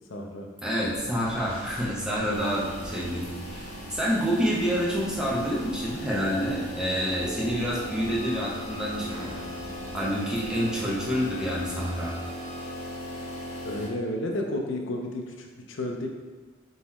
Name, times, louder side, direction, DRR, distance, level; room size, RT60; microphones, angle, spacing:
voice 1, 0.1-0.5 13.6-16.1, left 1 dB, 75° left, 2 dB, 0.5 m, -32 dB
voice 2, 0.6-9.4 9.9-12.1, equal, 5° right, -6 dB, 0.7 m, -28 dB
sound 1, 0.8-12.0, equal, 70° right, 1.4 m, -45 dB
sound 2, 2.3-13.9, equal, 35° left, 0.8 m, -38 dB
Bowed string instrument, 7.8-12.7, left 2 dB, 25° right, 1.1 m, -48 dB
3.9 x 3.0 x 4.1 m, 1.4 s
head